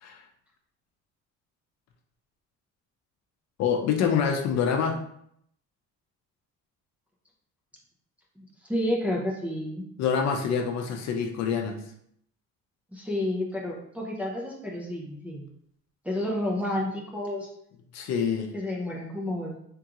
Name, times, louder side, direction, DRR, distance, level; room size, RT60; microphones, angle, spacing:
voice 1, 3.6-5.0 10.0-11.8 17.9-18.5, left 6 dB, 60° left, 4 dB, 0.6 m, -26 dB
voice 2, 8.4-9.9 12.9-15.5 16.0-17.5 18.5-19.5, left 1 dB, 5° right, -3 dB, 0.5 m, -30 dB
3.7 x 3.6 x 2.9 m, 0.71 s
cardioid pair, 170°, 30 cm